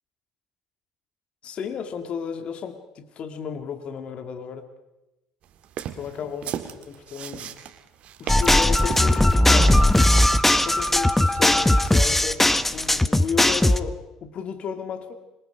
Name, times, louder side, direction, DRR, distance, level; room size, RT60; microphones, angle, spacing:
voice 1, 1.4-4.7 5.9-6.5 6.8-7.6 8.2-9.8 10.5-15.1, left 7 dB, 50° left, 8 dB, 2.1 m, -33 dB
sound 1, 5.6-10.4, right 9 dB, 60° right, 2.0 m, -35 dB
sound 2, 8.3-13.8, left 1 dB, 10° left, 1.2 m, -18 dB
26.5 x 23.0 x 5.1 m, 0.97 s
hypercardioid pair, 60°, 2 cm